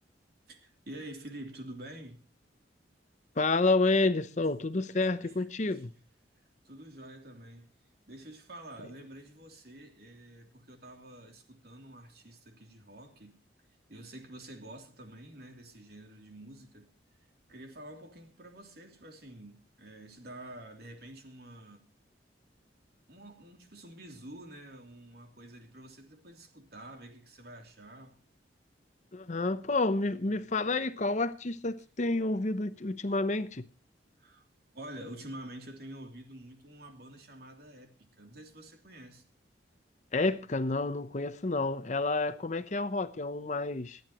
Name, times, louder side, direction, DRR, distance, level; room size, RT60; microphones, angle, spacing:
voice 1, 0.5-2.2 4.9-5.4 5.6-5.9 6.6-7.7 8.1-13.4 13.9-16.9 17.5-21.8 23.1-28.2 34.2-34.5 34.7-39.2, right 1 dB, 55° right, 3.0 m, -48 dB
voice 2, 3.4-5.9 29.1-33.7 40.1-44.0, left 3 dB, 40° left, 0.7 m, -29 dB
26.5 x 9.5 x 3.0 m
head